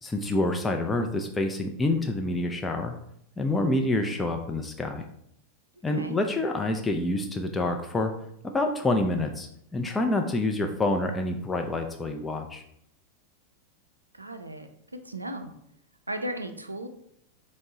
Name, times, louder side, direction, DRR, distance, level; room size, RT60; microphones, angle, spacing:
voice 1, 0.0-2.9 3.4-5.0 5.8-8.1 8.5-9.5 9.7-12.6, left 2 dB, 10° left, 3 dB, 0.3 m, -27 dB
voice 2, 14.1-14.7 15.0-15.5 16.1-16.9, right 1 dB, 85° right, 7 dB, 0.4 m, -35 dB
4.3 x 2.0 x 3.7 m, 0.71 s
figure-of-eight pair, 90°, 0 cm